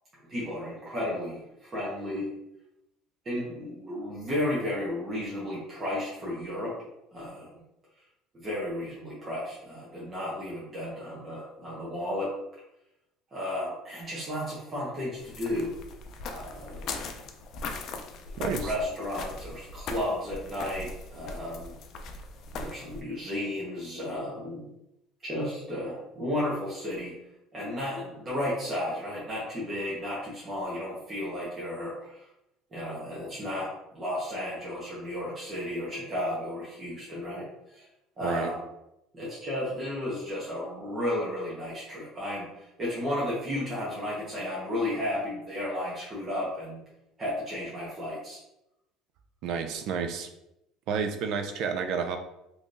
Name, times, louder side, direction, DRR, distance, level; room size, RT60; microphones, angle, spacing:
voice 1, 0.3-2.3 3.2-6.7 7.1-7.5 8.3-12.3 13.3-15.7 16.2-17.2 17.9-18.0 18.5-21.7 22.6-24.7 25.2-27.1 27.5-32.3 32.7-37.4 37.7-37.9 38.2-38.6 39.1-46.8 47.2-48.4, left 1 dB, 25° right, -7 dB, 1.1 m, -33 dB
sound 1, 15.2-23.0, left 3 dB, 50° left, 0.4 m, -39 dB
voice 2, 18.4-18.7 38.2-38.5 49.4-50.3 50.9-52.2, right 6 dB, 65° right, 6 dB, 0.4 m, -30 dB
3.6 x 3.1 x 2.6 m, 0.85 s
cardioid pair, 125°, 0 cm